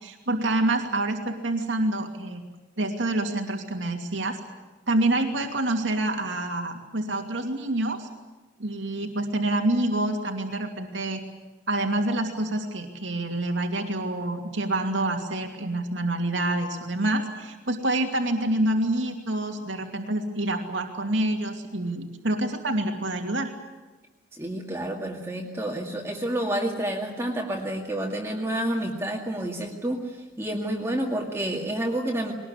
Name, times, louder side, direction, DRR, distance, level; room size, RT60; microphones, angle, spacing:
voice 1, 0.0-2.4 2.8-4.4 4.9-8.1 8.6-11.2 11.7-23.5, right 1 dB, 90° right, 3 dB, 2.7 m, -27 dB
voice 2, 24.3-30.0 30.4-32.3, right 1 dB, 15° right, 0 dB, 2.1 m, -29 dB
21.5 x 19.5 x 9.7 m, 1.2 s
head